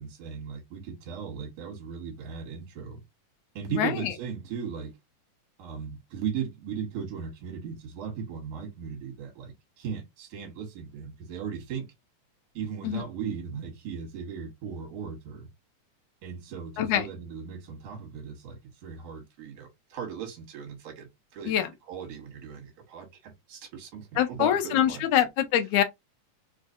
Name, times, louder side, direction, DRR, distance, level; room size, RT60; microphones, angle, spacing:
voice 1, 0.0-3.0 3.5-5.0 5.6-11.9 12.5-15.5 16.2-21.5 21.9-25.1, right 7 dB, 60° right, 2.3 m, -37 dB
voice 2, 3.8-4.1 12.8-13.0 16.8-17.1 21.5-21.7 24.2-25.8, left 11 dB, 85° left, 1.4 m, -24 dB
4.9 x 2.4 x 2.6 m
omnidirectional pair, 3.6 m